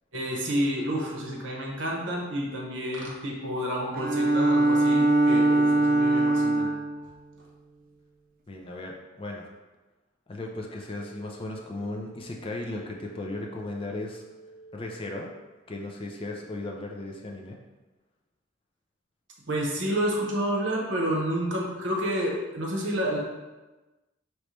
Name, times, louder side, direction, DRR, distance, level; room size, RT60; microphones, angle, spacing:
voice 1, 0.1-6.7 19.5-23.2, equal, 60° right, -1 dB, 1.0 m, -29 dB
Bowed string instrument, 3.9-7.0, right 2 dB, 40° right, 0.4 m, -22 dB
voice 2, 8.5-9.5 10.3-14.2 14.7-15.3 15.7-17.6, left 2 dB, 25° left, 0 dB, 0.4 m, -36 dB
sound 1, 10.3-15.3, right 3 dB, 90° left, 0.8 m, -50 dB
5.3 x 3.1 x 3.2 m, 1.1 s
head